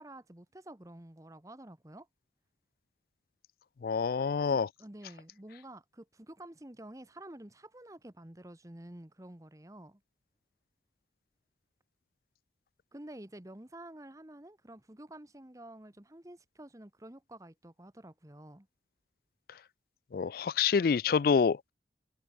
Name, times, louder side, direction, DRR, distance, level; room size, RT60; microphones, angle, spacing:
voice 1, 0.0-2.1 4.5-10.0 12.9-18.7, right 1 dB, 20° right, 1.1 m, -50 dB
voice 2, 3.8-4.7 20.1-21.7, left 6 dB, 55° left, 0.3 m, -27 dB
head